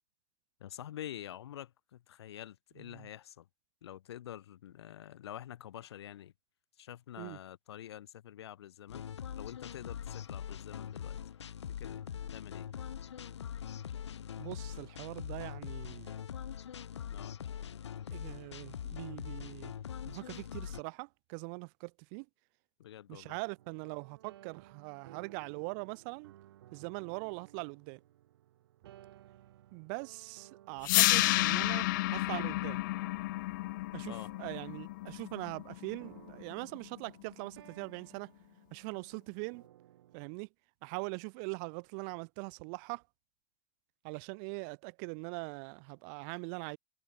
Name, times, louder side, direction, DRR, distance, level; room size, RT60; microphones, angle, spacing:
voice 1, 0.6-3.5 3.8-6.3 6.8-9.0 9.4-11.2 11.8-12.7 17.1-17.3 22.8-23.4 34.1-34.3, left 11 dB, 70° left, 6.4 m, -47 dB
sound 1, 8.9-20.8, left 9 dB, 85° left, 4.1 m, -42 dB
voice 2, 14.4-16.1 18.1-19.7 20.0-22.3 23.1-26.3 26.7-28.0 29.7-32.8 33.9-38.3 38.7-39.6 40.1-40.5 40.8-43.0 44.0-46.8, right 40 dB or more, 40° right, 2.4 m, -42 dB
sound 2, 23.6-40.4, right 13 dB, 65° right, 4.8 m, -59 dB
sound 3, 30.8-36.9, left 19 dB, 45° left, 0.4 m, -31 dB
hypercardioid pair, 145°, 14 cm